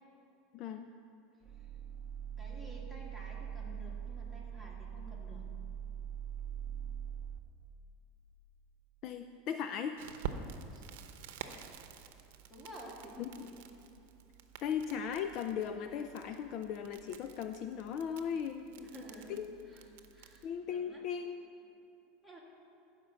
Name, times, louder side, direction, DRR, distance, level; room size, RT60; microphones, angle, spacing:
voice 1, 0.5-0.9 9.0-10.0 13.2-13.5 14.6-18.7 19.4-19.5 20.4-21.5, left 8 dB, 45° left, 8 dB, 0.4 m, -37 dB
sound 1, 1.4-7.4, right 8 dB, 25° right, 0.7 m, -42 dB
voice 2, 2.4-5.4 10.7-10.9 12.5-13.5 18.7-21.1 22.2-22.4, equal, 5° left, -4 dB, 2.3 m, -51 dB
Crackle, 10.0-20.5, right 7 dB, 75° right, 0.8 m, -49 dB
15.0 x 5.3 x 7.0 m, 2.7 s
supercardioid pair, 145°, 0 cm